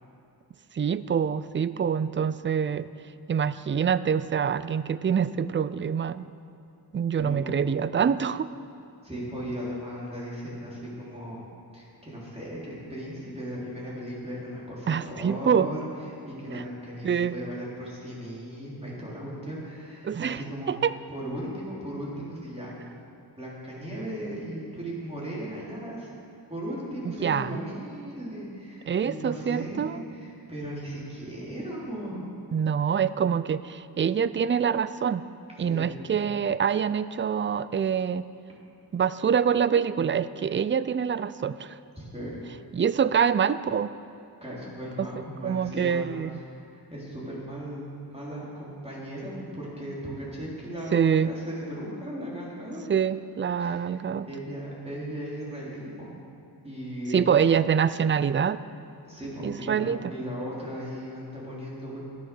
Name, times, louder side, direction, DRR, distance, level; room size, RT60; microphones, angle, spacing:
voice 1, 0.7-2.9 3.3-6.3 6.9-8.5 14.9-15.7 16.5-16.6 17.0-17.4 20.0-20.9 27.0-27.6 28.9-30.0 32.5-35.2 35.6-38.2 38.9-41.8 42.7-43.9 45.0-45.1 45.4-46.4 50.9-51.3 52.9-54.3 57.1-58.6 59.4-60.0, right 7 dB, 30° right, 15 dB, 0.4 m, -25 dB
voice 2, 7.2-7.6 9.0-11.4 11.7-15.8 16.2-20.7 21.1-22.7 23.4-26.1 26.5-32.3 35.7-35.9 42.0-42.4 44.4-52.8 53.6-53.8 54.3-56.1 56.6-57.2 59.0-62.0, equal, 15° right, -6 dB, 4.0 m, -37 dB
13.5 x 10.5 x 6.2 m, 2.6 s
wide cardioid pair, 100°, 39 cm